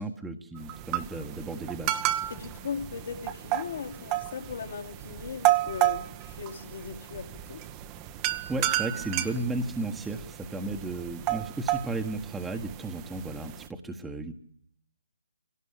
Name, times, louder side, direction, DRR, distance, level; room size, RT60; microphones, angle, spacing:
voice 1, 0.0-2.0 8.5-14.3, right 2 dB, 5° right, 4 dB, 1.5 m, -34 dB
sound 1, 0.6-13.7, right 14 dB, 20° right, 1.1 m, -32 dB
voice 2, 2.3-7.6, left 6 dB, 55° left, 3 dB, 2.7 m, -38 dB
24.5 x 18.0 x 8.3 m, 0.67 s
figure-of-eight pair, 140°, 0 cm